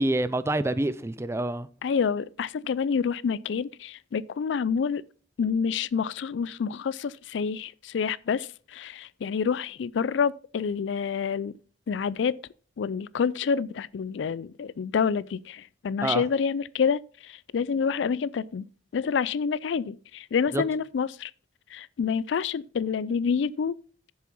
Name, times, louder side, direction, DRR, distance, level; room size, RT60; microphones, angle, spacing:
voice 1, 0.0-1.7 16.0-16.2 20.5-20.6, right 1 dB, 15° right, 0.4 m, -26 dB
voice 2, 1.8-5.0 5.4-11.5 11.9-12.3 12.8-18.7 18.9-21.3 21.7-23.7, left 6 dB, 75° left, 0.4 m, -28 dB
7.6 x 7.1 x 5.4 m
head